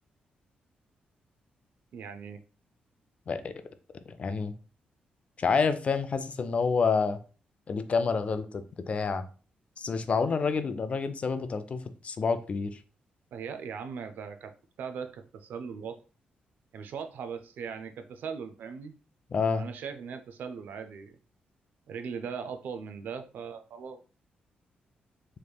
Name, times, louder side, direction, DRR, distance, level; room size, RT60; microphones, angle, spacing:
voice 1, 1.9-2.4 13.3-14.5 14.8-16.0 16.7-18.9 19.6-21.2 21.9-24.0, right 6 dB, 80° right, 8 dB, 0.4 m, -39 dB
voice 2, 4.2-4.5 5.4-7.2 7.7-9.2 9.8-12.8 19.3-19.7, left 5 dB, 40° left, 11 dB, 0.4 m, -28 dB
3.4 x 3.1 x 2.2 m, 0.36 s
cardioid pair, 100°, 3 cm